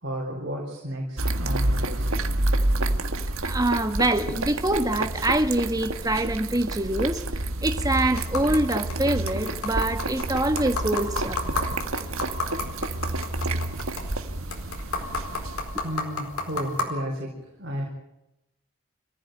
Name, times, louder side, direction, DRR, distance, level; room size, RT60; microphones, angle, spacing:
voice 1, 0.0-2.1 14.7-15.0 15.8-17.8, equal, 55° right, -2 dB, 4.7 m, -33 dB
sound 1, 1.2-16.0, right 2 dB, 70° right, 1.7 m, -29 dB
voice 2, 3.4-7.2 7.6-11.4, right 1 dB, 15° right, 7 dB, 1.5 m, -25 dB
sound 2, 7.8-16.8, left 3 dB, 85° left, 4.5 m, -34 dB
26.0 x 15.5 x 9.2 m, 0.91 s
head